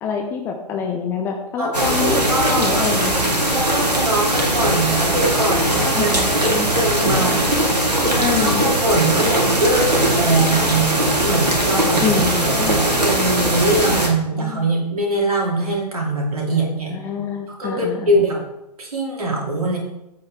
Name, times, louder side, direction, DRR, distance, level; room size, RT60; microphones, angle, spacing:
voice 1, 0.0-3.1 5.9-6.7 8.2-8.6 12.0-12.8 13.9-14.0 14.3-14.7 16.9-18.2, left 6 dB, 10° left, 3 dB, 0.5 m, -26 dB
voice 2, 1.6-2.8 3.4-16.9 17.5-18.4 18.8-19.8, right 2 dB, 65° right, -1 dB, 2.9 m, -22 dB
sound 1, 1.7-14.1, right 1 dB, 80° right, 2.1 m, -19 dB
8.3 x 7.6 x 3.6 m, 0.88 s
figure-of-eight pair, 125°, 21 cm